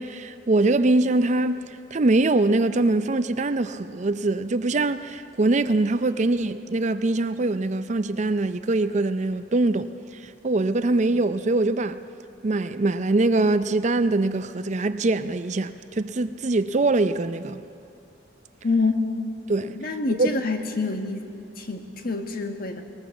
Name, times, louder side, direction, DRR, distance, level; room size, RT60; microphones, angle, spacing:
voice 1, 0.0-9.9 10.2-12.0 12.4-17.6 19.5-19.8 20.1-20.3, right 2 dB, 40° right, 0.5 m, -23 dB
voice 2, 18.6-19.0 19.7-21.3 21.6-22.8, left 3 dB, 55° left, 1.5 m, -26 dB
20.5 x 20.0 x 7.1 m
head